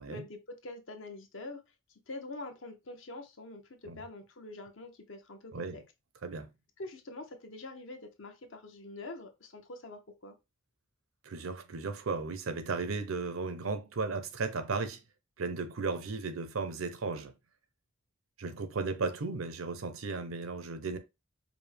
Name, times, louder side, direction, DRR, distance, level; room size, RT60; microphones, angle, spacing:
voice 1, 0.0-1.6 1.9-5.8 6.8-10.3, left 2 dB, 65° left, 0.8 m, -45 dB
voice 2, 11.2-15.0 15.4-17.3 18.4-21.0, right 4 dB, 90° right, 0.6 m, -35 dB
5.0 x 2.1 x 3.3 m
head